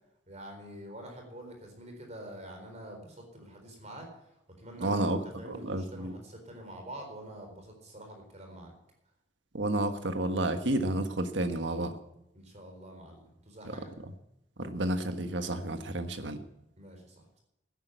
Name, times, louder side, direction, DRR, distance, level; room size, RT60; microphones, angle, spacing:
voice 1, 0.3-4.1 4.6-8.7 12.3-13.9 16.8-17.4, right 1 dB, 40° right, 3 dB, 4.1 m, -46 dB
voice 2, 4.8-5.2 5.5-6.1 9.5-11.9 14.6-16.4, right 1 dB, 85° right, 8 dB, 1.5 m, -30 dB
12.5 x 10.5 x 8.1 m, 0.84 s
head